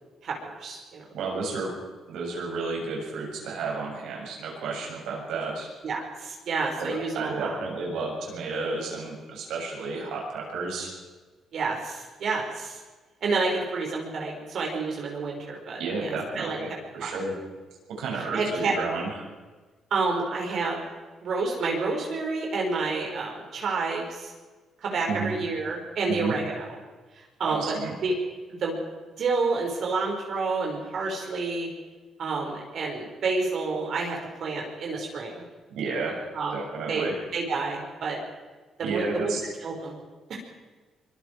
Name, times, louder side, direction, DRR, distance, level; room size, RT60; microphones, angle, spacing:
voice 1, 0.2-1.0 5.8-7.6 11.5-12.8 13.2-16.1 16.3-16.6 17.0-17.1 18.2-18.7 19.9-20.8 21.2-24.3 24.8-26.8 27.1-27.7 28.0-28.1 28.5-28.8 29.2-31.7 32.2-35.4 36.3-36.6 36.9-37.1 37.3-38.2 38.8-39.3 39.6-40.0 40.3-40.4, right 3 dB, 60° right, -1 dB, 5.5 m, -29 dB
voice 2, 1.1-1.7 2.1-5.7 6.8-10.9 15.8-16.7 16.9-17.3 17.9-19.3 25.1-25.3 26.1-26.3 27.4-27.9 35.7-36.2 36.5-37.1 38.8-39.4, right 3 dB, 80° right, -1 dB, 7.0 m, -31 dB
24.0 x 23.0 x 4.9 m, 1.3 s
cardioid pair, 90°, 0 cm